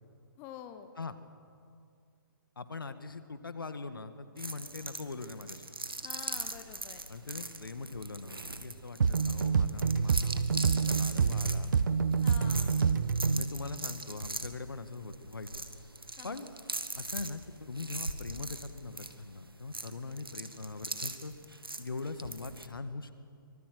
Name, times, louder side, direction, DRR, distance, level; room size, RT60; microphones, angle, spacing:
voice 1, 0.4-0.9 6.0-7.0 12.2-12.7 16.2-16.4, left 10 dB, 20° left, 9 dB, 1.2 m, -47 dB
voice 2, 2.6-5.6 7.1-11.7 13.3-15.5 16.2-16.5 17.0-21.3 21.8-23.3, left 3 dB, 75° left, 10 dB, 1.8 m, -42 dB
sound 1, 4.4-22.7, right 2 dB, 90° right, 1.9 m, -41 dB
sound 2, 9.0-13.5, right 5 dB, 60° right, 1.3 m, -27 dB
24.5 x 23.5 x 7.9 m, 2.3 s
figure-of-eight pair, 135°, 12 cm